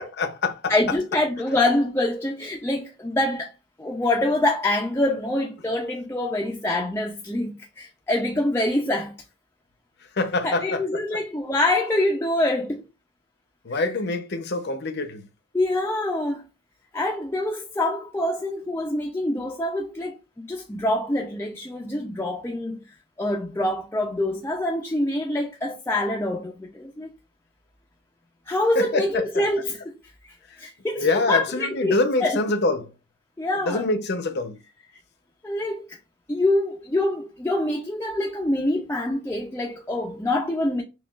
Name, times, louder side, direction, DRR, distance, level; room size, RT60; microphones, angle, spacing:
voice 1, 0.2-0.6 10.2-10.8 13.7-15.2 28.8-29.0 31.0-32.9 33.7-34.6, left 2 dB, 50° left, 0.6 m, -25 dB
voice 2, 0.7-3.5 3.8-9.1 10.4-12.8 13.7-13.8 15.5-16.4 16.9-27.1 28.5-29.9 30.6-32.4 33.4-33.9 35.4-36.0 36.3-40.8, left 1 dB, 10° left, 0.4 m, -25 dB
5.7 x 2.3 x 2.3 m
head